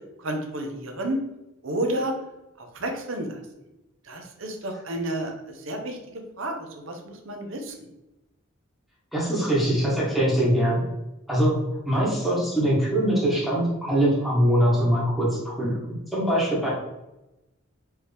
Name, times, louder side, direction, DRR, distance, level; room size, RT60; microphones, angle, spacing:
voice 1, 0.2-1.2 1.6-2.1 2.6-3.4 4.0-7.8 12.0-12.1, right 1 dB, 65° right, 3 dB, 0.8 m, -31 dB
voice 2, 9.1-10.8 11.3-11.5 11.9-16.7, equal, ahead, -7 dB, 1.4 m, -22 dB
4.6 x 3.0 x 3.4 m, 0.97 s
head